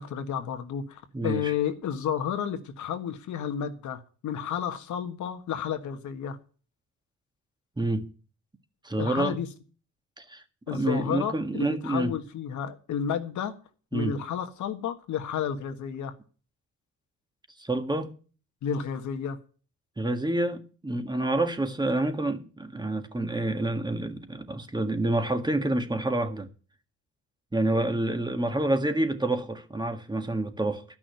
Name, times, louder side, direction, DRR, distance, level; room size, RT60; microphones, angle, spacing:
voice 1, 0.0-6.4 9.0-9.5 10.7-13.5 13.9-16.1 18.6-19.4, left 8 dB, 75° left, 1.6 m, -31 dB
voice 2, 1.1-1.5 7.8-8.1 8.8-9.4 10.2-12.2 13.9-14.2 17.6-18.1 20.0-26.5 27.5-30.8, right 2 dB, 15° right, 1.7 m, -28 dB
12.5 x 6.2 x 9.3 m
cardioid pair, 90°, 30 cm